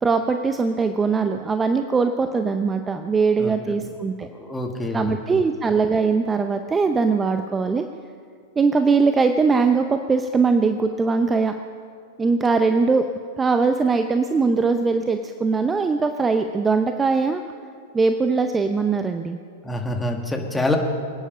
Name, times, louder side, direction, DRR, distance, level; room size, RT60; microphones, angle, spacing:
voice 1, 0.0-4.3 4.9-7.9 8.6-11.6 12.2-13.0 13.4-17.4 17.9-19.4, right 4 dB, 15° right, 7 dB, 0.7 m, -21 dB
voice 2, 3.4-3.8 4.3-5.4 19.6-20.8, left 2 dB, 10° left, 3 dB, 2.0 m, -26 dB
24.0 x 9.6 x 5.6 m, 2.2 s
figure-of-eight pair, 100°, 0 cm